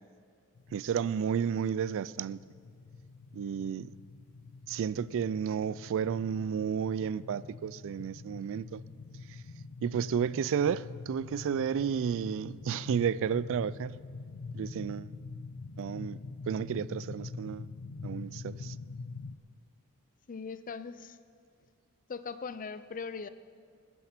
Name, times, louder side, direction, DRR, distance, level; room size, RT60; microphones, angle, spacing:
sound 1, 0.6-19.4, left 3 dB, 90° left, 0.6 m, -45 dB
voice 1, 0.7-2.4 3.3-3.9 4.7-8.8 9.3-9.4 9.8-14.0 14.5-15.1 15.8-16.2 16.5-17.7 18.0-18.8, right 7 dB, 60° right, 0.3 m, -32 dB
voice 2, 20.3-21.2 22.1-23.3, left 5 dB, 35° left, 0.4 m, -40 dB
20.5 x 11.0 x 4.3 m
head